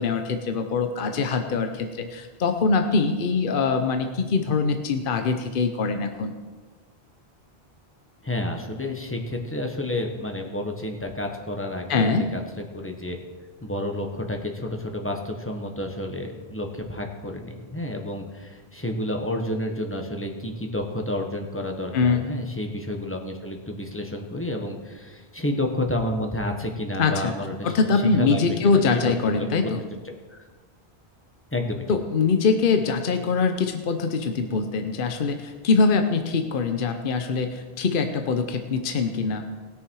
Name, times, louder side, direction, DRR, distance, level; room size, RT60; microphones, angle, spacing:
voice 1, 0.0-6.3 11.9-12.3 21.9-22.3 27.0-27.3 27.6-29.8 31.9-39.5, left 4 dB, 55° left, 6 dB, 0.9 m, -23 dB
voice 2, 8.2-12.4 12.7-13.2 13.6-29.7 30.0-30.5 31.5-31.8, left 1 dB, 10° left, 3 dB, 1.3 m, -30 dB
19.5 x 6.9 x 4.7 m, 1.4 s
omnidirectional pair, 1.1 m